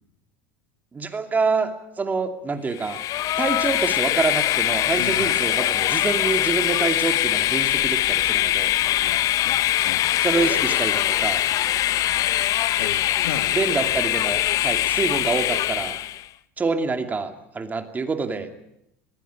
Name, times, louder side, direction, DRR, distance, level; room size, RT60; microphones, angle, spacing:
voice 1, 0.9-1.7 2.0-3.0 3.4-8.7 10.2-11.4 13.5-16.0 16.6-18.5, right 4 dB, 20° right, 7 dB, 2.5 m, -26 dB
Train, 2.8-16.2, left 13 dB, 45° left, 0.7 m, -22 dB
voice 2, 5.0-5.4 9.0-9.6 9.8-10.1 12.8-13.8, left 10 dB, 80° left, 7 dB, 1.7 m, -36 dB
21.0 x 16.0 x 9.5 m, 0.82 s
supercardioid pair, 100°, 8 cm